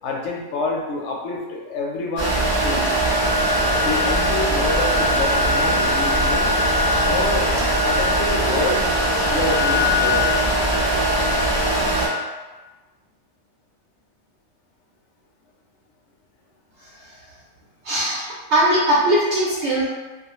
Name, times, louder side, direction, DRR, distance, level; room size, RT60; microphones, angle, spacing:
voice 1, 0.0-2.9 3.5-6.5 7.0-7.5 7.8-8.9 9.3-10.3, left 3 dB, 70° left, -1 dB, 0.8 m, -27 dB
sound 1, 2.2-12.1, equal, 45° right, 0.3 m, -20 dB
voice 2, 17.8-19.8, right 1 dB, 65° right, -6 dB, 0.8 m, -20 dB
2.4 x 2.2 x 2.9 m, 1.2 s
omnidirectional pair, 1.4 m